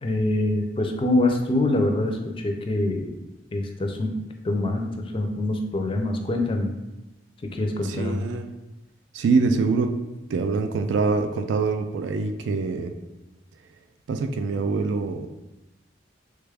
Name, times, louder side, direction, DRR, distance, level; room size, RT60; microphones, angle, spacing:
voice 1, 0.0-3.1 3.5-4.1 4.4-6.7 7.5-8.3, left 2 dB, 30° left, 3 dB, 0.4 m, -25 dB
voice 2, 7.8-8.5 9.1-10.0 10.3-12.9 14.1-15.3, right 4 dB, 80° right, 7 dB, 0.3 m, -24 dB
3.3 x 2.3 x 3.3 m, 0.99 s
head